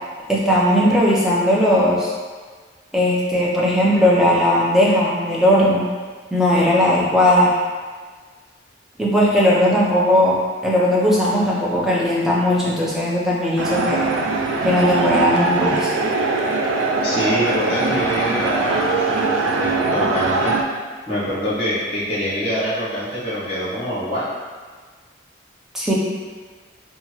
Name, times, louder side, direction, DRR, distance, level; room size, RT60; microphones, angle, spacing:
voice 1, 0.3-2.1 2.9-5.9 6.3-7.5 9.0-14.0 14.6-15.9 25.7-25.9, left 1 dB, ahead, -6 dB, 0.4 m, -17 dB
sound 1, 13.6-20.6, right 3 dB, 90° right, 0.3 m, -21 dB
voice 2, 17.0-20.5 21.1-24.2, equal, 30° left, -9 dB, 1.0 m, -24 dB
2.8 x 2.2 x 2.9 m, 1.5 s
head